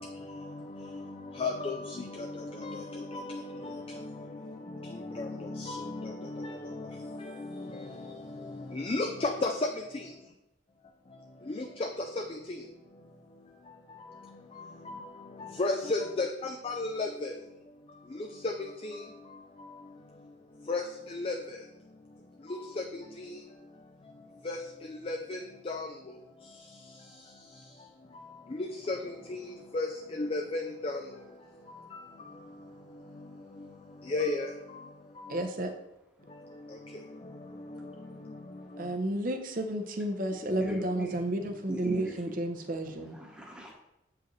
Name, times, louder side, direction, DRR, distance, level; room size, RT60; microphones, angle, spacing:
voice 1, 0.0-10.2 11.2-12.7 12.9-13.0 13.7-17.4 17.9-21.7 22.4-23.7 24.2-27.7 28.1-35.5 36.3-38.9, left 2 dB, 30° left, 4 dB, 0.4 m, -37 dB
voice 2, 35.3-35.7 38.8-43.2, right 1 dB, 45° right, 6 dB, 0.7 m, -32 dB
voice 3, 40.4-41.2 41.7-42.1 42.9-43.7, equal, 5° right, -1 dB, 1.1 m, -39 dB
7.9 x 4.8 x 3.1 m, 0.89 s
head